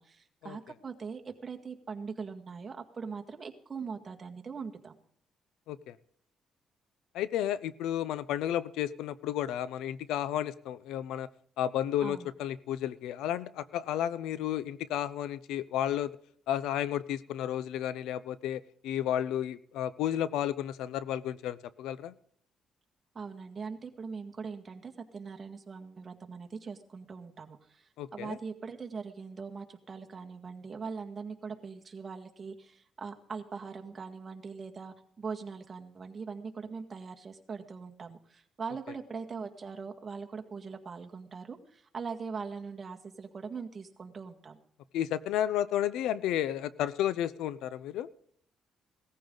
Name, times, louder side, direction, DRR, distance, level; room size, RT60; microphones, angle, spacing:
voice 1, 0.0-5.0 12.0-12.3 23.1-44.6, right 5 dB, 35° right, 3 dB, 1.9 m, -41 dB
voice 2, 7.1-11.3 11.6-16.1 16.5-22.1 28.0-28.4 44.9-48.1, left 11 dB, 90° left, 17 dB, 0.6 m, -32 dB
18.0 x 14.0 x 3.9 m, 0.65 s
cardioid pair, 90°, 0 cm